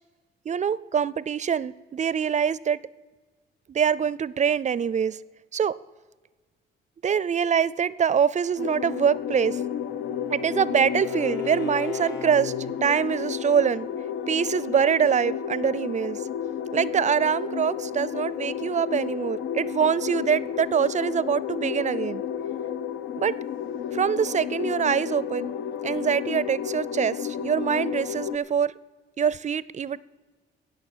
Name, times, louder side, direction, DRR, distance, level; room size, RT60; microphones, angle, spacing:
voice 1, 0.5-2.8 3.7-5.2 5.5-5.7 7.0-9.6 10.3-12.5 12.8-13.9 14.3-16.2 16.7-22.2 23.2-23.3 23.9-25.5 25.8-28.7 29.2-30.0, right 7 dB, 35° right, 20 dB, 0.4 m, -24 dB
sound 1, 8.6-28.4, left 9 dB, 80° left, 0.6 m, -32 dB
Bowed string instrument, 9.2-12.8, left 4 dB, 60° left, 1.7 m, -37 dB
17.5 x 6.6 x 7.3 m, 1.3 s
cardioid pair, 90°, 20 cm